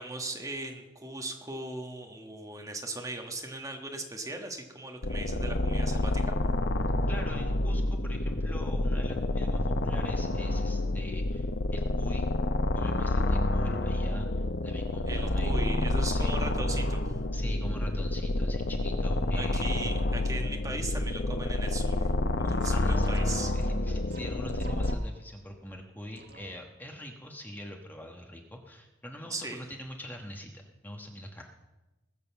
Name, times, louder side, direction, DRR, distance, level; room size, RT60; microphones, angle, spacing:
voice 1, 0.0-6.3 15.1-17.2 19.4-22.1 22.4-23.5 29.3-29.7, right 2 dB, 15° right, 3 dB, 1.3 m, -38 dB
sound 1, 5.0-24.9, left 1 dB, 60° left, 0.8 m, -29 dB
voice 2, 7.1-12.3 12.7-15.6 16.1-16.3 17.3-19.8 22.7-23.1 23.5-31.6, equal, 10° left, 2 dB, 1.2 m, -43 dB
sound 2, 22.5-25.3 26.2-26.8, right 2 dB, 55° right, 1.5 m, -48 dB
20.0 x 6.8 x 7.0 m, 1.1 s
head